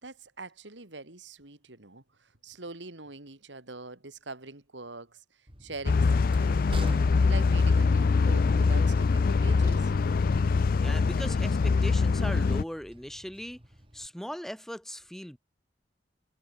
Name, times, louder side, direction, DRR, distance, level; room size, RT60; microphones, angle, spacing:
voice 1, 0.0-5.2 5.6-6.9 7.3-9.9, right 3 dB, 75° right, 3.0 m, -43 dB
Train, 5.5-14.1, right 1 dB, 30° right, 5.1 m, -46 dB
sound 1, 5.8-12.6, left 4 dB, 50° left, 0.4 m, -23 dB
voice 2, 10.8-13.6 13.9-15.4, equal, ahead, 0.7 m, -39 dB
head